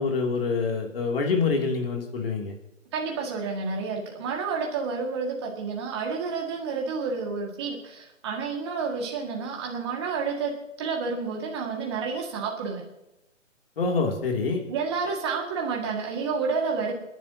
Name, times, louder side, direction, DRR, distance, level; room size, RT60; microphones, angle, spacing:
voice 1, 0.0-2.5 13.8-14.6, left 4 dB, 45° left, 1 dB, 2.9 m, -26 dB
voice 2, 2.9-12.8 14.7-17.0, right 5 dB, 20° right, -1 dB, 2.0 m, -30 dB
29.5 x 11.0 x 2.9 m, 0.88 s
hypercardioid pair, 165°, 38 cm